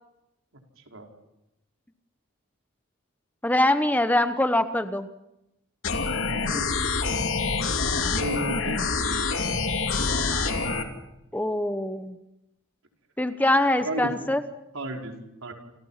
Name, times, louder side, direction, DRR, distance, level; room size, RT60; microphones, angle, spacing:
voice 1, 0.8-1.1 6.2-6.7 8.1-9.7 13.8-14.1 14.7-15.1 15.4-15.5, right 1 dB, 75° right, 2 dB, 4.9 m, -34 dB
voice 2, 3.4-5.1 11.3-12.2 13.2-14.4, left 1 dB, 10° left, 9 dB, 0.9 m, -23 dB
sound 1, 5.8-10.8, left 4 dB, 70° left, 2.9 m, -26 dB
29.0 x 28.0 x 5.8 m, 0.88 s
head